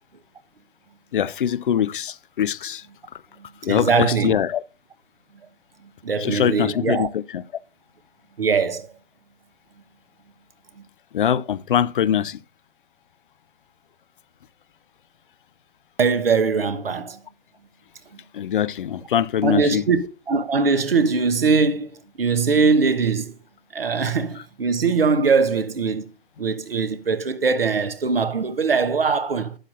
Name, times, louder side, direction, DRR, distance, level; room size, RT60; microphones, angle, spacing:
voice 1, 1.1-2.8 3.6-4.6 6.2-7.2 11.1-12.4 18.3-19.8, left 9 dB, 60° left, 0.6 m, -22 dB
voice 2, 3.6-4.4 6.0-7.1 8.4-8.9 16.0-17.2 19.4-20.0 20.3-23.3 23.7-26.1 26.4-29.6, right 5 dB, 75° right, 1.3 m, -21 dB
12.0 x 8.4 x 2.6 m
figure-of-eight pair, 115°, 30 cm